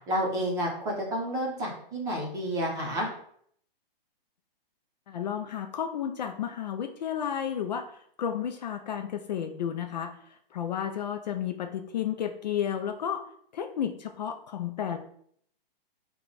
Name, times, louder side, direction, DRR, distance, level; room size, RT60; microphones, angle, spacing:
voice 1, 0.1-3.1, equal, 10° right, -2 dB, 0.7 m, -30 dB
voice 2, 5.1-7.8 8.2-10.2 10.5-13.2 13.5-15.0, left 9 dB, 50° left, 6 dB, 0.4 m, -32 dB
4.8 x 2.2 x 3.9 m, 0.64 s
hypercardioid pair, 160°, 29 cm